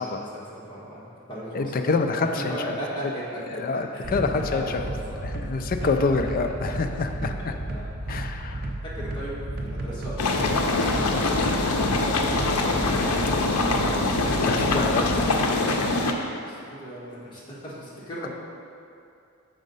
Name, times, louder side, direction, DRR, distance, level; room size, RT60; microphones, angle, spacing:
voice 1, 0.0-5.7 6.4-8.2 8.8-13.4 16.4-18.3, equal, 20° left, -8 dB, 1.6 m, -38 dB
voice 2, 1.5-2.5 3.5-4.9 5.2-7.5 8.1-8.7 14.4-15.5 18.2-18.3, left 4 dB, 40° left, 6 dB, 0.4 m, -27 dB
sound 1, 4.0-15.3, right 1 dB, 45° right, 0.6 m, -33 dB
sound 2, 10.2-16.1, left 2 dB, 90° left, 0.6 m, -23 dB
6.4 x 4.0 x 5.3 m, 2.6 s
head